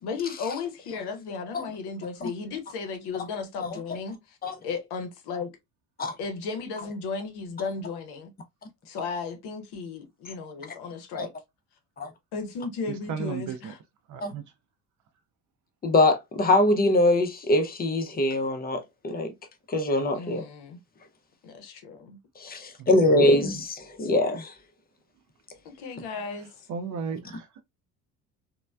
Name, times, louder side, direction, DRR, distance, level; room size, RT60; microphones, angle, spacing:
voice 1, 0.0-5.5 6.2-8.3 8.9-11.3 12.3-13.8 20.1-20.8 21.4-22.2 25.6-26.5, left 4 dB, 50° left, 0.8 m, -35 dB
voice 2, 13.1-13.7 14.1-14.4 22.8-23.2 26.7-27.6, right 6 dB, 40° right, 0.5 m, -35 dB
voice 3, 15.8-19.3 19.7-20.4 22.4-24.5, left 1 dB, 20° left, 0.6 m, -23 dB
3.1 x 2.2 x 2.3 m
figure-of-eight pair, 50°, 49 cm